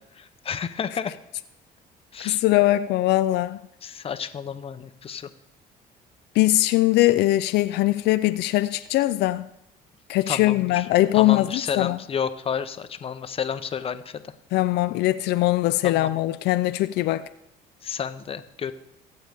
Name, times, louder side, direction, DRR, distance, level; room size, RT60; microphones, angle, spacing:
voice 1, 0.1-1.1 2.1-2.4 3.8-5.3 10.3-10.9 11.1-14.2 15.8-16.1 17.8-18.7, left 7 dB, 35° left, 0.7 m, -31 dB
voice 2, 2.2-3.6 6.4-9.5 10.1-12.0 14.5-17.3, left 16 dB, 80° left, 0.4 m, -21 dB
23.5 x 7.9 x 3.5 m
cardioid pair, 110°, 17 cm